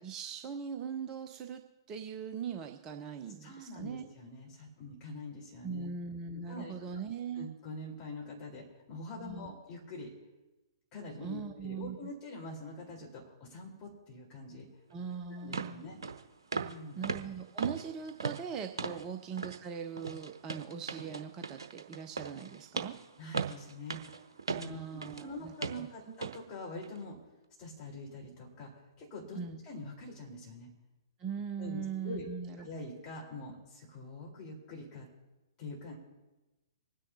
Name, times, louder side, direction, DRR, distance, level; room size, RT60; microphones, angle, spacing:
voice 1, 0.0-1.6 1.9-4.1 5.6-7.5 9.2-9.5 11.2-12.0 14.9-15.9 17.0-22.9 24.6-25.9 29.3-29.6 31.2-32.7, right 6 dB, 20° right, 5 dB, 0.6 m, -40 dB
voice 2, 3.4-5.9 6.3-6.8 7.3-10.1 10.9-14.7 15.3-16.0 16.5-17.0 18.9-19.0 23.2-24.0 24.5-27.2 27.6-30.7 31.6-32.3 32.6-35.1 35.6-36.0, left 2 dB, 25° left, -3 dB, 3.9 m, -45 dB
sound 1, 14.9-15.0 15.5-15.8 16.0-16.2 16.5-16.8 17.0-19.1 19.4-19.6 20.0-25.3 25.6-25.8 26.2-26.4 26.8-27.0, right 5 dB, 65° right, 0.8 m, -38 dB
25.5 x 9.8 x 2.8 m, 1.1 s
figure-of-eight pair, 115°, 3 cm